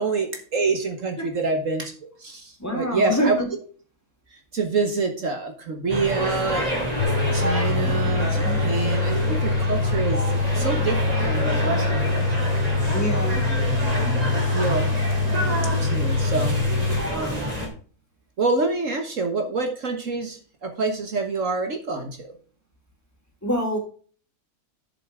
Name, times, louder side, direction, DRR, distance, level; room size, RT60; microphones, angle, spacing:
voice 1, 0.0-1.9 2.2-3.4 4.3-6.8 7.3-12.7 13.5-13.7 14.1-14.9 15.8-16.6 17.1-17.5 18.4-22.3, right 3 dB, 55° right, 5 dB, 1.7 m, -27 dB
voice 2, 2.6-3.5 8.4-8.6 12.9-13.4 23.4-23.8, equal, 10° left, 1 dB, 3.0 m, -25 dB
sound 1, 5.9-17.7, equal, 25° right, 2.8 m, -28 dB
sound 2, 7.0-17.0, left 3 dB, 75° left, 1.3 m, -24 dB
10.0 x 7.8 x 3.6 m, 0.42 s
omnidirectional pair, 1.6 m